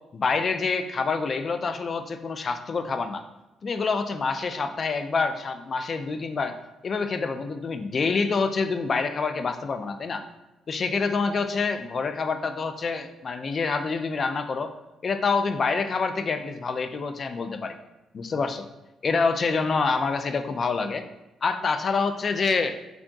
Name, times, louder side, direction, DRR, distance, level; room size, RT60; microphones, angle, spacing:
voice 1, 0.1-3.2 3.6-6.6 6.8-10.2 10.7-14.7 15.0-17.7 18.1-18.7 19.0-21.0 21.4-22.8, left 4 dB, 45° left, 8 dB, 0.4 m, -26 dB
3.5 x 2.3 x 3.8 m, 1.0 s
cardioid pair, 90°, 0 cm